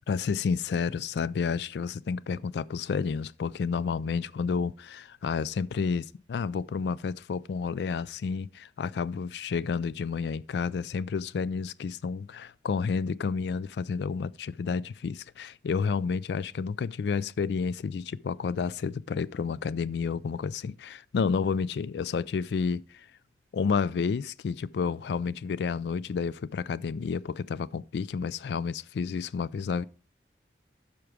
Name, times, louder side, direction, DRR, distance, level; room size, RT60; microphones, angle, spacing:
voice 1, 0.1-23.1 23.5-29.8, left 5 dB, 70° left, 0.3 m, -30 dB
12.0 x 4.6 x 5.0 m
head